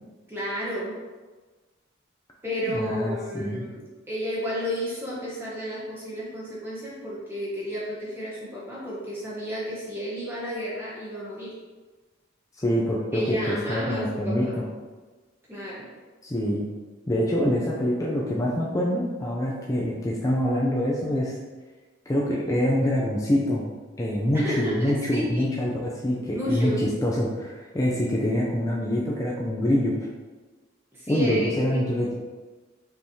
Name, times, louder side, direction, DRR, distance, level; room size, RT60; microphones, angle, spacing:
voice 1, 0.3-0.9 2.4-11.5 13.1-14.6 15.5-15.9 24.3-25.5 26.3-26.8 30.9-31.8, equal, 10° right, -7 dB, 1.0 m, -32 dB
voice 2, 2.6-3.6 12.6-14.5 16.2-16.7 17.1-21.3 22.1-23.6 24.0-25.7 26.0-29.9 31.1-32.1, left 1 dB, 20° left, -4 dB, 0.4 m, -25 dB
5.4 x 3.2 x 2.7 m, 1.3 s
head